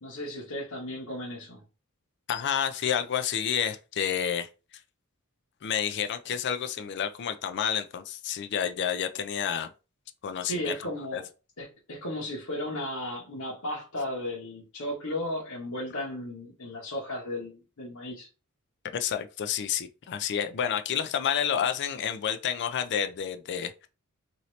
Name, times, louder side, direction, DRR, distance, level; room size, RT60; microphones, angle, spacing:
voice 1, 0.0-1.6 10.4-11.2 11.6-18.3, left 1 dB, 75° left, 1.0 m, -35 dB
voice 2, 2.3-4.5 5.6-9.7 10.2-10.8 11.1-11.2 18.9-23.9, left 8 dB, 50° left, 0.4 m, -29 dB
2.8 x 2.6 x 3.1 m
head